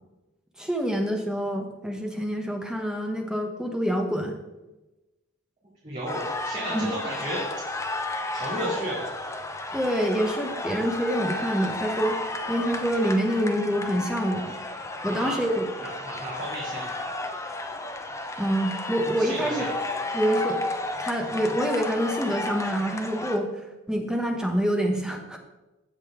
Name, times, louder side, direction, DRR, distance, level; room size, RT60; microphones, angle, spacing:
voice 1, 0.6-4.3 6.7-6.9 9.7-12.2 12.5-14.5 15.0-15.7 18.4-19.7 20.1-20.6 21.0-23.5 23.9-25.4, equal, 5° right, 2 dB, 1.0 m, -26 dB
voice 2, 5.8-7.9 8.3-9.2 15.1-15.4 15.8-16.8 19.2-19.7, right 1 dB, 35° right, -8 dB, 2.7 m, -33 dB
sound 1, 6.1-23.4, left 2 dB, 15° left, 0.7 m, -33 dB
15.0 x 5.3 x 3.7 m, 1.0 s
head